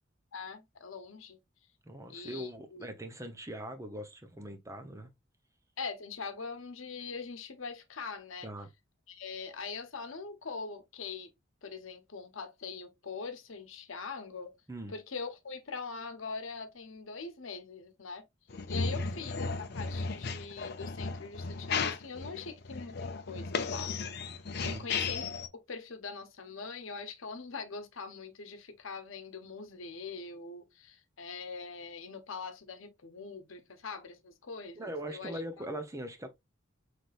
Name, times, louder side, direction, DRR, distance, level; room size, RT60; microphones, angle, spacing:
voice 1, 0.3-1.4 2.1-2.9 5.8-8.5 9.1-11.3 11.6-14.5 14.9-18.2 18.7-24.1 24.6-25.3 25.7-35.4, left 4 dB, 80° left, 0.9 m, -42 dB
voice 2, 1.8-5.1 8.4-8.7 14.7-14.9 19.1-19.2 24.6-24.9 34.8-36.3, right 1 dB, 15° right, 0.7 m, -41 dB
sound 1, 18.5-25.5, left 4 dB, 50° left, 0.6 m, -35 dB
5.8 x 3.4 x 2.5 m
head